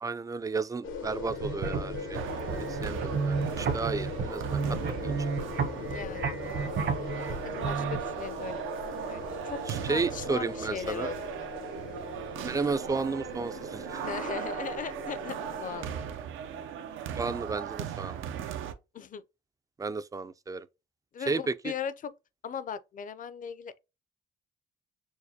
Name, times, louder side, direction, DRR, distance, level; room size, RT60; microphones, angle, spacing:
voice 1, 0.0-2.2 2.5-4.8 5.0-5.1 9.7-11.1 12.4-14.1 17.2-18.2 19.8-20.7 21.3-21.7, right 4 dB, 20° right, 0.3 m, -33 dB
sound 1, 0.8-16.1, left 5 dB, 90° left, 1.1 m, -41 dB
sound 2, 1.2-8.0, right 5 dB, 60° right, 1.1 m, -33 dB
sound 3, 2.1-18.7, right 9 dB, 80° right, 0.6 m, -38 dB
voice 2, 5.8-6.3 7.3-8.6 9.1-9.6 9.9-11.6 14.0-16.0 18.9-19.2 21.1-22.1 22.4-23.8, left 7 dB, 45° left, 0.5 m, -38 dB
6.5 x 2.2 x 2.7 m
cardioid pair, 90°, 20 cm